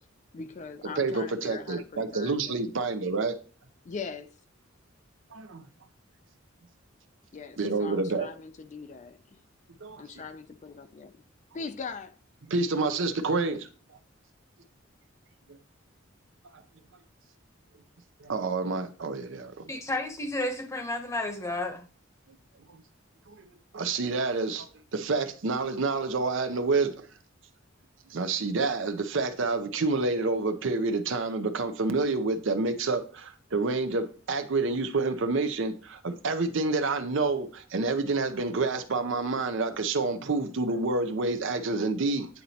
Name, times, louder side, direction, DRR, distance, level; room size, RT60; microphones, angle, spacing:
voice 1, 0.3-2.7 3.8-4.3 7.3-9.2 10.0-11.1 11.5-12.2, left 5 dB, 35° left, 0.4 m, -41 dB
voice 2, 1.0-3.3 5.3-5.7 7.6-8.3 12.5-13.7 18.2-19.7 22.7-22.8 23.3-23.5 23.7-27.1 28.1-42.3, right 3 dB, 65° right, 0.6 m, -28 dB
voice 3, 19.7-21.8, left 2 dB, 15° left, 0.9 m, -32 dB
9.2 x 4.0 x 2.8 m
head